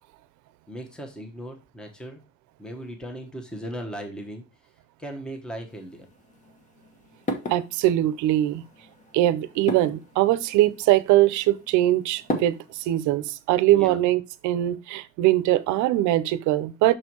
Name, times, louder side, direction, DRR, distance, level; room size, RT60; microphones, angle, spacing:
voice 1, 0.7-2.2 2.6-4.4 5.0-6.1 13.7-14.0, equal, 5° left, 0.9 m, -37 dB
sound 1, 5.7-13.0, left 1 dB, 25° left, 1.0 m, -37 dB
voice 2, 7.5-8.6 9.1-17.0, right 14 dB, 80° right, 0.7 m, -22 dB
6.3 x 4.4 x 4.5 m
cardioid pair, 170°, 29 cm